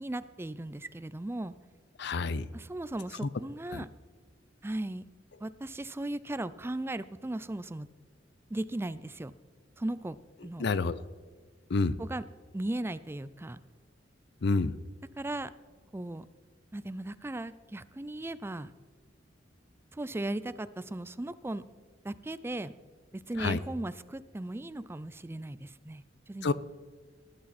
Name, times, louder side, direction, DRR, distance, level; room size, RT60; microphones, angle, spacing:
voice 1, 0.0-1.5 2.5-3.9 4.6-5.0 5.4-7.9 8.5-9.3 9.8-10.2 10.4-10.7 12.0-12.2 12.5-13.6 15.2-15.5 15.9-16.3 16.7-18.7 19.9-21.6 22.0-22.7 23.1-26.5, right 1 dB, 15° right, 15 dB, 0.4 m, -37 dB
voice 2, 2.0-2.5 3.2-3.3 3.7-3.8 10.6-11.0 11.7-12.0 14.4-14.7 23.4-23.6 26.4-26.5, left 3 dB, 65° left, 16 dB, 0.6 m, -28 dB
19.0 x 11.0 x 4.2 m, 1.4 s
head